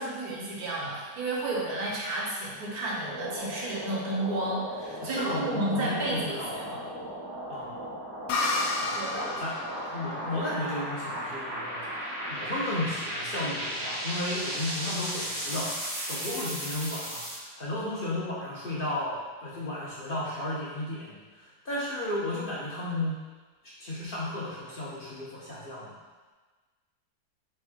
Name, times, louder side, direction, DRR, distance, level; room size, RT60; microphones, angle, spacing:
voice 1, 0.0-6.8 8.9-9.2, right 2 dB, 75° right, -4 dB, 1.4 m, -32 dB
sound 1, 2.8-17.4, equal, 25° right, 0.5 m, -36 dB
voice 2, 5.0-6.5 7.5-7.7 8.8-11.9 12.3-15.7 16.1-23.2 23.8-25.9, left 1 dB, 50° left, -6 dB, 0.7 m, -34 dB
sound 2, 8.3-11.8, left 2 dB, 85° left, 1.2 m, -32 dB
3.6 x 3.4 x 3.5 m, 1.3 s
omnidirectional pair, 1.7 m